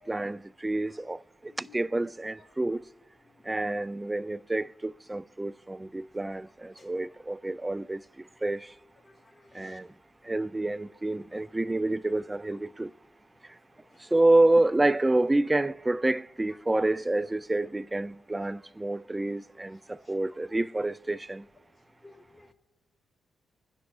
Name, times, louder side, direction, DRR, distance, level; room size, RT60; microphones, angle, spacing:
voice 1, 0.1-2.9 3.5-8.0 8.4-8.7 9.5-9.9 10.2-12.9 14.1-21.4, right 2 dB, 20° right, 0.3 m, -28 dB
voice 2, 1.4-1.8 3.4-3.5 6.8-6.9 9.4-9.8 22.0-22.5, left 3 dB, 25° left, 2.2 m, -55 dB
24.5 x 9.9 x 2.5 m
supercardioid pair, 50°, 0 cm